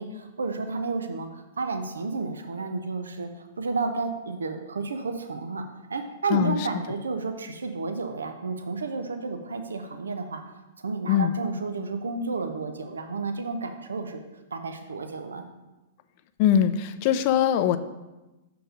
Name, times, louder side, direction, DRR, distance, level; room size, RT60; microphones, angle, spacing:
voice 1, 0.0-3.3 3.6-5.6 5.9-10.4 10.8-14.2 14.5-15.4, right 3 dB, 85° right, 7 dB, 0.6 m, -31 dB
voice 2, 6.3-6.7 11.1-11.3 16.4-17.8, left 10 dB, 50° left, 11 dB, 0.4 m, -22 dB
6.3 x 4.6 x 5.1 m, 1.1 s
hypercardioid pair, 115°, 0 cm